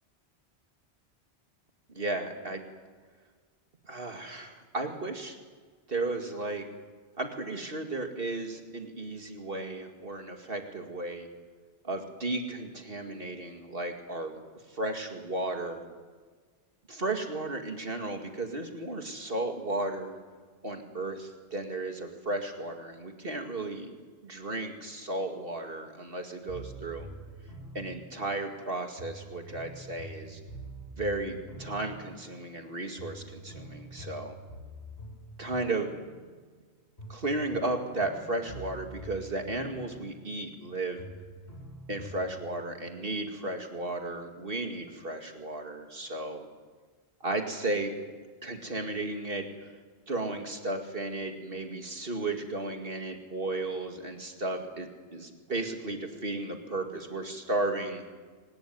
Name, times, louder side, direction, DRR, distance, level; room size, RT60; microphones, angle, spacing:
voice 1, 1.9-2.6 3.8-5.4 5.9-6.7 7.2-11.3 11.8-14.4 14.7-15.9 16.9-20.2 20.6-23.9 24.2-27.1 27.7-30.4 31.0-34.3 35.4-35.9 37.1-41.1 41.9-46.5 47.2-47.9 48.4-49.5 50.1-58.0, right 2 dB, 55° right, 4 dB, 2.5 m, -34 dB
sound 1, 26.5-28.6 29.0-32.7 33.0-36.6 37.0-40.7 41.0-42.6, right 1 dB, 60° left, 7.5 m, -46 dB
23.5 x 20.0 x 9.4 m, 1.5 s
omnidirectional pair, 1.1 m